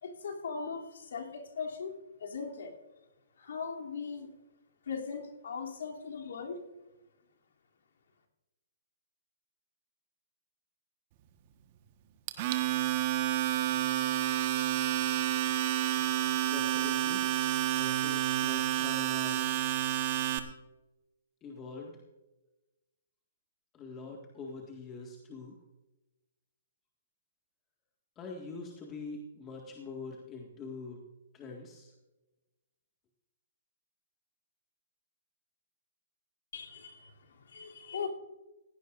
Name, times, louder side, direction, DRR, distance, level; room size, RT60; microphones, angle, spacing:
voice 1, 0.0-2.7 3.4-4.3 4.8-6.6 36.5-38.1, left 5 dB, 70° left, 0 dB, 3.0 m, -39 dB
Domestic sounds home sounds, 12.3-20.4, right 13 dB, 40° right, 1.3 m, -29 dB
voice 2, 16.4-17.3 17.8-19.6 21.4-22.0 23.7-25.6 28.2-31.0 31.3-31.9, left 3 dB, 20° left, 0 dB, 1.9 m, -44 dB
18.5 x 16.5 x 2.6 m, 1.0 s
hypercardioid pair, 135°, 0 cm